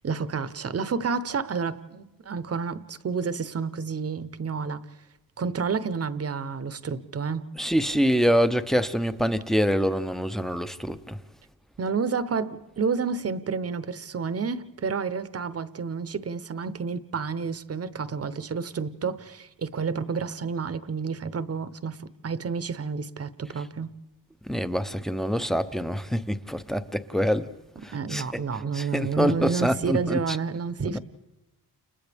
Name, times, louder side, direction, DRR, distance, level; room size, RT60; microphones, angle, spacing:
voice 1, 0.0-4.8 5.4-7.5 11.8-23.9 27.9-31.0, right 5 dB, 35° right, 0.9 m, -30 dB
voice 2, 7.6-11.2 24.5-27.5 27.8-28.4 28.7-30.4 30.8-31.0, equal, ahead, 0.7 m, -25 dB
29.5 x 29.0 x 3.5 m
wide cardioid pair, 115°, 40 cm